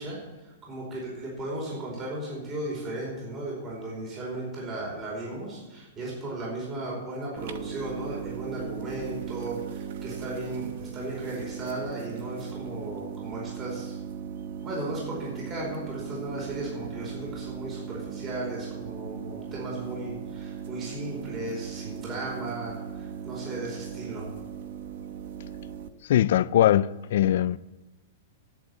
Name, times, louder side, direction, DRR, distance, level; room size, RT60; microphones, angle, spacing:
voice 1, 0.0-14.0 14.6-24.3, right 2 dB, 25° right, 4.8 m, -36 dB
sound 1, 7.4-25.9, right 8 dB, 65° right, 0.9 m, -38 dB
voice 2, 26.0-27.6, left 12 dB, 65° left, 0.4 m, -21 dB
10.5 x 8.4 x 8.3 m
hypercardioid pair, 150°, 0 cm